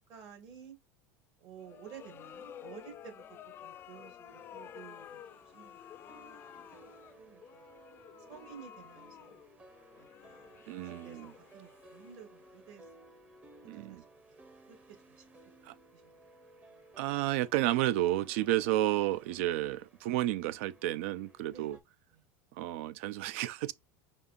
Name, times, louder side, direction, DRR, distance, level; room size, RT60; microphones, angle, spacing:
voice 1, 0.1-0.8 1.4-3.2 3.6-6.8 7.1-7.7 8.3-9.4 10.0-12.9 13.6-14.0 14.7-14.8 15.1-15.2 15.6-16.0 21.5-21.7, right 8 dB, 55° right, 2.0 m, -53 dB
sound 1, 1.6-12.6, left 10 dB, 35° left, 0.4 m, -52 dB
sound 2, 4.2-21.8, right 2 dB, 20° right, 0.8 m, -58 dB
voice 2, 10.7-11.3 13.6-14.0 15.6-15.7 17.0-21.8 22.5-23.7, right 15 dB, 75° right, 0.4 m, -31 dB
5.2 x 2.5 x 2.5 m
supercardioid pair, 120°, 7 cm